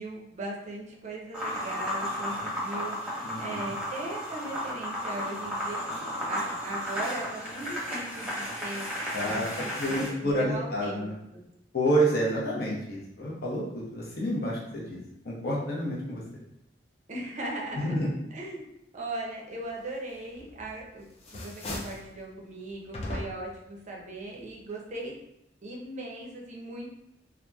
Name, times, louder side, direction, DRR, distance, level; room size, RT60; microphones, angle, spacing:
voice 1, 0.0-11.1 11.3-11.4 17.1-18.0 18.3-18.7 18.9-21.0 21.3-25.1 25.6-26.9, right 2 dB, 40° right, -1 dB, 0.5 m, -39 dB
sound 1, 1.3-10.1, equal, 5° right, 0.9 m, -34 dB
voice 2, 3.2-3.7 9.1-9.5 9.7-11.1 11.7-16.4 17.8-18.1, equal, 60° left, -4 dB, 0.8 m, -29 dB
sound 2, 20.4-20.8 21.1-22.1 22.9-23.6, left 1 dB, 35° left, 0.4 m, -37 dB
2.8 x 2.4 x 2.3 m, 0.82 s
head